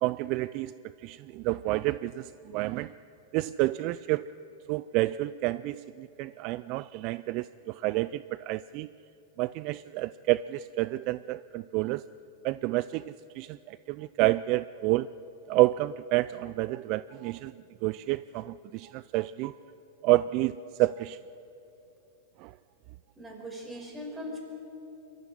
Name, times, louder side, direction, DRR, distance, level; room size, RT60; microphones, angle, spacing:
voice 1, 0.0-0.7 1.0-2.9 3.3-4.3 4.7-8.9 9.4-12.0 12.4-15.1 15.5-17.5 17.8-19.5 20.0-21.2 22.4-22.5, right 18 dB, 45° right, 17 dB, 0.4 m, -29 dB
voice 2, 23.2-24.4, equal, 10° right, 1 dB, 5.2 m, -40 dB
22.5 x 13.0 x 9.8 m, 2.9 s
hypercardioid pair, 120°, 0 cm